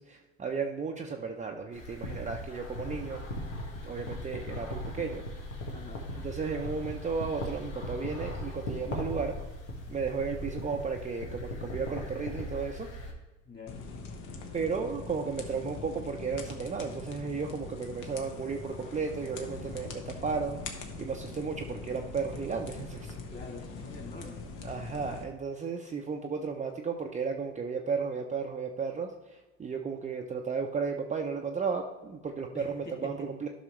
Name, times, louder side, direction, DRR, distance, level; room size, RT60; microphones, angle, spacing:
voice 1, 0.0-3.2 3.8-5.2 6.2-9.4 9.9-12.9 14.5-20.6 21.0-23.2 24.6-33.5, right 5 dB, 20° right, 2 dB, 0.7 m, -34 dB
sound 1, 1.7-13.1, left 1 dB, 80° left, 1.6 m, -39 dB
voice 2, 13.4-13.8 23.3-24.6 32.5-33.3, left 3 dB, 25° left, 1 dB, 2.5 m, -46 dB
sound 2, 13.7-25.2, left 3 dB, 60° left, 1.3 m, -42 dB
12.0 x 5.6 x 3.1 m, 1.2 s
hypercardioid pair, 75°, 35 cm